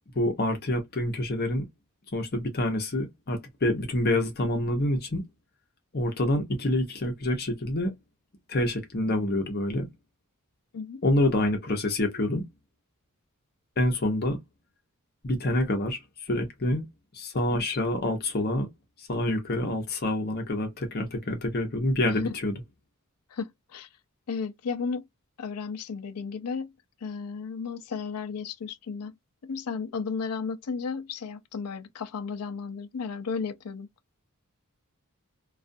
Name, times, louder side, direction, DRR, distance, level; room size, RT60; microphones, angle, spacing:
voice 1, 0.1-1.7 2.1-5.2 5.9-7.9 8.5-9.9 11.0-12.4 13.8-14.4 15.2-16.8 17.1-18.7 19.0-22.5, left 1 dB, 45° left, 0.8 m, -27 dB
voice 2, 23.3-23.9 24.3-25.1 25.4-26.7 27.0-29.1 29.4-33.9, left 5 dB, 90° left, 0.5 m, -34 dB
2.4 x 2.4 x 2.5 m
head